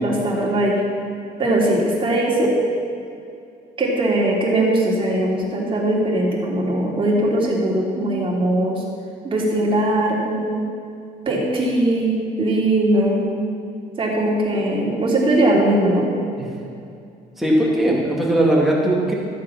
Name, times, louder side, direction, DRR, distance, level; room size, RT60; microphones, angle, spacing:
voice 1, 0.0-0.8 1.4-2.6 3.8-8.8 9.2-10.6 11.3-13.2 14.0-16.1, right 1 dB, 30° right, -3 dB, 3.1 m, -20 dB
voice 2, 17.4-19.1, right 1 dB, ahead, -4 dB, 2.7 m, -18 dB
13.5 x 7.5 x 5.9 m, 2.5 s
cardioid pair, 110°, 17 cm